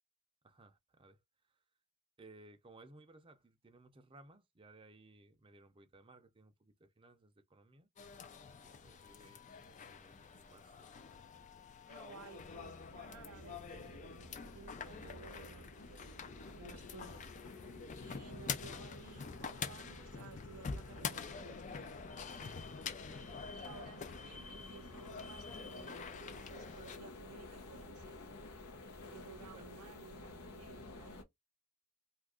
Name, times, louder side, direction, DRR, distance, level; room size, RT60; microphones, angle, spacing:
voice 1, 0.4-1.2 1.5-1.6 2.2-7.9 8.6-11.0 29.5-29.7, right 2 dB, 25° right, 0.5 m, -61 dB
sound 1, 8.0-27.0, left 6 dB, 35° left, 0.4 m, -47 dB
voice 2, 11.9-16.0 16.6-17.3 18.0-21.9 23.5-28.2 29.1-31.2, right 7 dB, 80° right, 0.5 m, -56 dB
sound 2, 12.4-31.2, left 2 dB, 75° left, 0.8 m, -52 dB
2.7 x 2.5 x 3.5 m
head